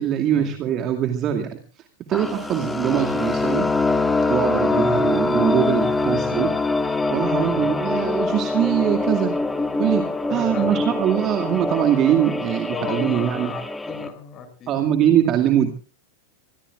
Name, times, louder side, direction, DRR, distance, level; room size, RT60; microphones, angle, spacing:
voice 1, 0.0-1.6 2.1-3.7 4.3-6.6 6.9-9.4 9.8-13.5 14.7-15.7, right 10 dB, 35° right, 4 dB, 2.3 m, -22 dB
sound 1, 2.1-14.1, left 3 dB, 5° left, 2.1 m, -24 dB
voice 2, 4.7-5.0 6.1-6.4 7.4-7.7 10.3-10.8 12.4-15.0, left 6 dB, 30° left, 7 dB, 7.2 m, -35 dB
24.5 x 21.5 x 2.5 m, 0.40 s
figure-of-eight pair, 90°, 0 cm